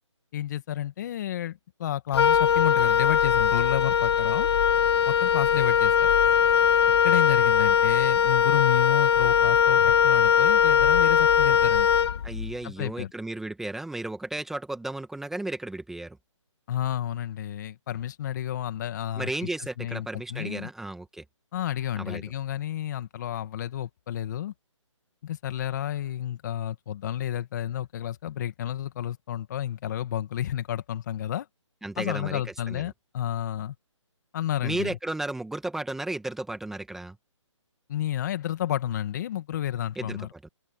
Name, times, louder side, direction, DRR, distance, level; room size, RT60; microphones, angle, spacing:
voice 1, 0.3-4.5 5.1-6.1 7.0-11.9 12.6-13.1 16.7-19.3 19.8-20.7 21.5-24.5 25.2-31.5 32.0-33.8 34.3-35.0 37.9-40.3, left 11 dB, 35° left, 2.2 m, -31 dB
Wind instrument woodwind instrument, 2.1-12.6, left 7 dB, 55° left, 0.6 m, -21 dB
voice 2, 12.2-16.2 19.2-21.2 22.0-22.2 31.8-32.4 32.7-32.9 34.6-37.2 39.9-40.5, right 2 dB, ahead, 1.7 m, -34 dB
hypercardioid pair, 160°, 16 cm